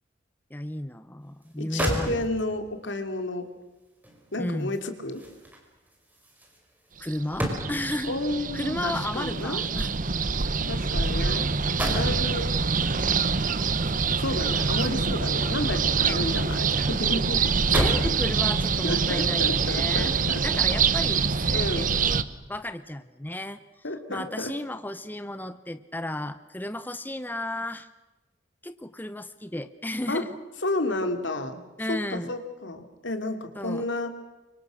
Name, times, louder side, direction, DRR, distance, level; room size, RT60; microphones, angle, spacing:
voice 1, 0.5-2.3 4.4-4.8 7.0-8.2 8.5-9.9 11.0-11.2 16.0-16.2 17.7-20.1 20.4-23.6 24.1-27.9 28.6-30.4 31.8-32.3 33.5-33.9, left 1 dB, 10° left, 11 dB, 0.8 m, -34 dB
sound 1, 1.4-1.5 1.8-2.6 4.0-8.0 9.1-11.2 11.5-12.3 13.7-15.3 15.7-16.7 17.0-17.1 17.5-18.2 18.9-19.1, equal, 10° right, 4.9 m, -34 dB
voice 2, 1.6-3.5 4.3-5.2 8.1-9.6 10.7-11.5 11.9-12.5 14.2-17.4 17.7-18.2 18.8-20.4 21.5-21.9 23.8-24.5 30.1-30.2 30.6-31.6 31.9-34.1, left 2 dB, 75° left, 7 dB, 2.8 m, -31 dB
sound 2, 7.1-22.2, right 5 dB, 45° right, 0.9 m, -25 dB
29.5 x 25.0 x 6.5 m, 1.1 s
head